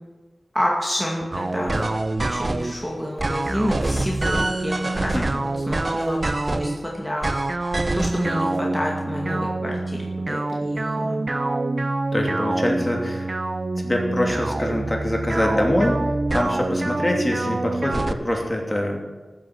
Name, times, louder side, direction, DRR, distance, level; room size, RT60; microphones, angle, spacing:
voice 1, 0.5-1.9 2.2-11.2, equal, ahead, -3 dB, 2.3 m, -29 dB
sound 1, 1.3-2.8 3.2-6.8 7.2-18.1, right 2 dB, 40° right, 0.7 m, -25 dB
voice 2, 12.1-13.3 13.7-16.0 16.3-19.0, left 1 dB, 20° left, 0 dB, 2.9 m, -24 dB
14.0 x 7.8 x 8.0 m, 1.3 s
wide cardioid pair, 75°, 0 cm